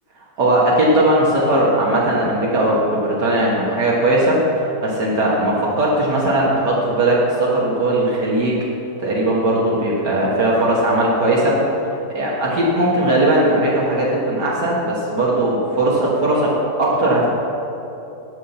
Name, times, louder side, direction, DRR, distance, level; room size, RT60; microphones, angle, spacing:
voice 1, 0.4-8.6 9.0-11.6 12.2-17.3, right 1 dB, 75° right, -5 dB, 2.0 m, -18 dB
10.0 x 5.6 x 7.8 m, 2.9 s
omnidirectional pair, 1.8 m